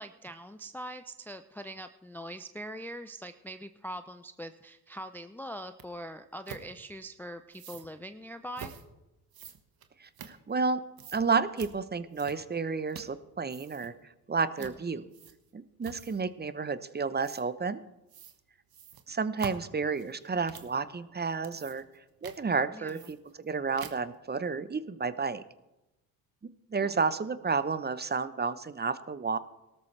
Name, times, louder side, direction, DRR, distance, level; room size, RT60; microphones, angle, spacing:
voice 1, 0.0-8.8 14.6-15.1 22.7-23.1 26.8-27.0, equal, 5° left, 9 dB, 0.5 m, -43 dB
sound 1, 5.8-5.9 6.5-6.7 7.5-7.9 8.5-8.8 9.3-10.7 11.0-11.2 11.6-11.7 12.1-12.6 12.9-13.2 13.4-13.9 14.6-14.8 15.1-15.5 15.8-16.3 17.2-17.4 18.1-18.4 18.7-20.8 21.3-22.0 22.2-22.4 22.9-23.5 23.8-24.2, right 8 dB, 50° right, 1.5 m, -46 dB
voice 2, 10.0-10.8 11.1-13.9 14.3-15.1 15.5-17.8 19.1-21.8 22.2-25.4 26.7-29.4, right 4 dB, 20° right, 14 dB, 0.8 m, -31 dB
18.0 x 13.0 x 3.3 m, 0.97 s
hypercardioid pair, 65°, 46 cm